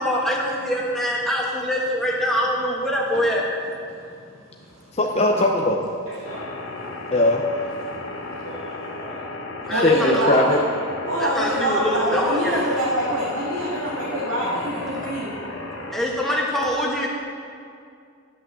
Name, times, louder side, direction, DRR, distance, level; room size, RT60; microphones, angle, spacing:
voice 1, 0.0-3.4 9.7-10.2 11.2-12.6 15.9-17.1, equal, ahead, -3 dB, 1.3 m, -24 dB
voice 2, 3.9-5.0 6.0-7.1 7.8-9.2 12.9-13.2 16.2-16.4, equal, 30° right, -10 dB, 1.8 m, -43 dB
voice 3, 4.9-5.9 7.1-7.4 9.7-10.6, left 1 dB, 30° left, 1 dB, 0.6 m, -19 dB
sound 1, 6.2-15.9, left 2 dB, 55° left, 1.0 m, -34 dB
voice 4, 9.7-10.6 11.1-15.3, equal, 85° right, -6 dB, 1.7 m, -25 dB
11.0 x 6.1 x 6.9 m, 2.4 s
head